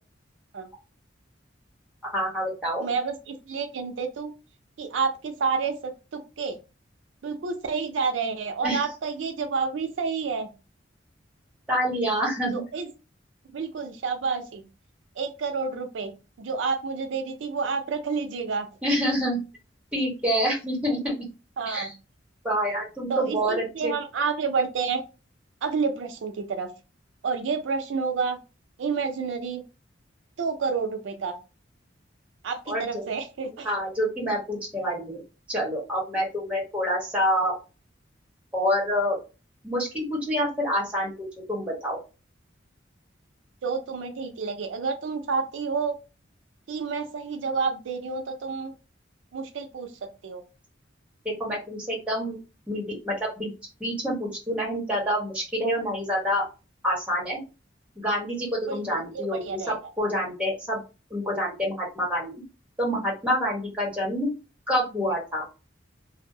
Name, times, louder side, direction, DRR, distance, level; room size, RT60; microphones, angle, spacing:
voice 1, 2.1-2.9 8.6-8.8 11.7-12.6 18.8-19.4 19.9-21.1 21.7-21.9 22.4-23.9 32.7-33.0 33.6-35.2 35.5-37.5 38.5-39.2 39.6-42.0 51.2-52.4 52.7-53.5 53.8-56.5 56.8-57.4 58.0-60.8 61.1-62.4 62.8-64.3 64.7-65.4, equal, 5° right, -3 dB, 1.0 m, -27 dB
voice 2, 2.8-4.3 4.8-5.8 6.1-6.6 7.2-10.5 12.5-12.9 13.5-14.6 15.2-16.1 16.4-18.7 21.6-21.9 23.1-25.0 25.6-26.7 27.2-28.4 28.8-29.6 30.4-31.4 32.4-33.7 43.6-45.9 46.7-48.7 49.3-49.9 50.2-50.4 58.7-58.8 59.1-59.8, right 5 dB, 80° right, 6 dB, 0.4 m, -29 dB
2.5 x 2.0 x 2.6 m, 0.31 s
head